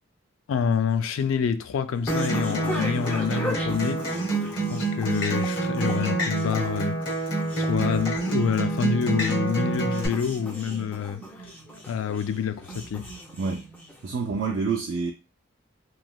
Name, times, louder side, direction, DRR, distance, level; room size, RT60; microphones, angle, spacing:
voice 1, 0.5-4.3 4.7-7.0 7.6-11.2 11.9-13.1, left 7 dB, 80° left, 0.3 m, -27 dB
sound 1, 0.7-14.3, equal, 10° left, 0.5 m, -38 dB
Acoustic guitar, 2.1-10.1, right 2 dB, 55° left, 0.9 m, -27 dB
voice 2, 13.4-13.7 14.0-15.1, right 5 dB, 60° right, 0.4 m, -27 dB
3.1 x 2.7 x 2.2 m
head